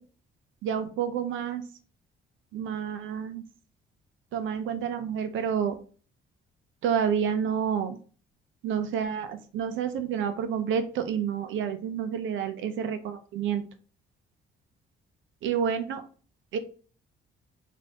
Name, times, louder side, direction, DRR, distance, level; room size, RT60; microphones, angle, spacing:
voice 1, 0.6-1.6 2.5-3.4 4.3-5.8 6.8-8.0 8.6-13.6 15.4-16.0 16.5-16.6, right 7 dB, 80° right, 9 dB, 0.7 m, -29 dB
4.2 x 2.7 x 3.4 m, 0.39 s
cardioid pair, 90°, 20 cm